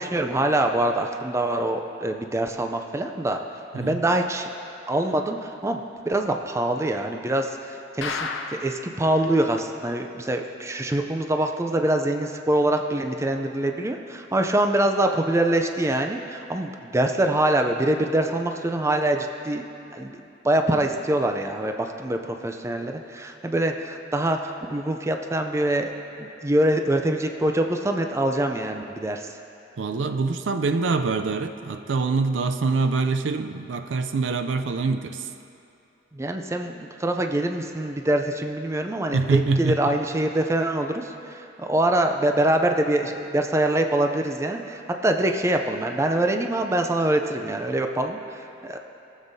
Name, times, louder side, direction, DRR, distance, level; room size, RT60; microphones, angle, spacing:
voice 1, 0.0-3.4 3.7-4.5 4.9-8.2 8.6-19.6 19.9-25.9 26.2-29.4 36.1-48.8, right 1 dB, 15° right, 4 dB, 0.4 m, -24 dB
sound 1, 8.0-8.9 9.2-9.3 9.6-9.7 10.1-10.2, left 4 dB, 85° left, 0.6 m, -31 dB
voice 2, 29.8-35.2 39.1-39.9, right 4 dB, 80° right, 7 dB, 0.5 m, -25 dB
17.0 x 7.3 x 2.7 m, 2.7 s
head